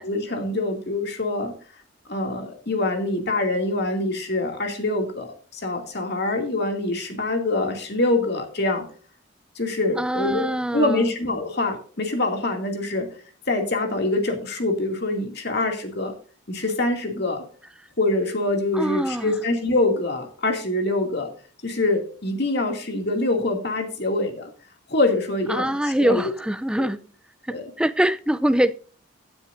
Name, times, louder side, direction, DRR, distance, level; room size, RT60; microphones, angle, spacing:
voice 1, 0.0-1.5 2.1-8.8 9.6-13.1 13.5-16.1 16.5-17.4 18.0-21.3 21.6-24.5 24.9-26.3 26.8-26.9 27.5-27.7, left 2 dB, 50° left, 2.5 m, -25 dB
voice 2, 10.0-11.1 18.7-19.3 25.5-27.0 27.5-28.8, right 1 dB, 5° right, 0.4 m, -23 dB
16.5 x 9.6 x 2.6 m
head